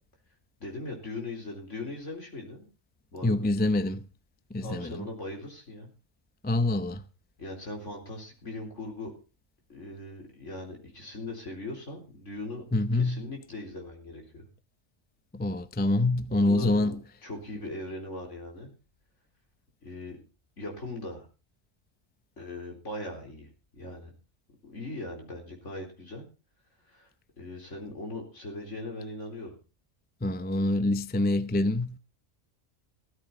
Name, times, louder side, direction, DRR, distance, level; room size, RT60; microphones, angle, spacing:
voice 1, 0.6-2.6 3.1-3.5 4.6-5.9 7.4-9.1 9.7-12.6 12.9-14.5 16.3-17.0 17.2-18.7 19.8-20.2 20.6-21.3 22.4-24.1 24.6-26.2 26.9-27.1 27.4-29.6, left 2 dB, 65° left, 4.5 m, -39 dB
voice 2, 3.2-4.1 4.5-5.1 6.4-7.0 12.7-13.3 15.3-17.0 30.2-32.0, left 2 dB, 10° left, 0.5 m, -26 dB
15.5 x 14.0 x 4.2 m
omnidirectional pair, 1.4 m